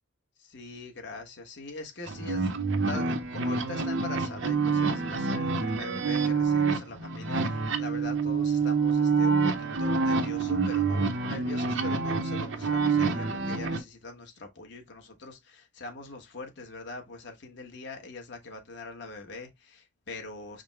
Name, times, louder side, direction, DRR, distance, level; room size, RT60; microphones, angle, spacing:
voice 1, 0.4-2.5 2.8-20.6, left 3 dB, 55° left, 1.1 m, -42 dB
sound 1, 2.1-13.8, right 4 dB, 65° right, 0.7 m, -27 dB
5.0 x 2.1 x 4.5 m
head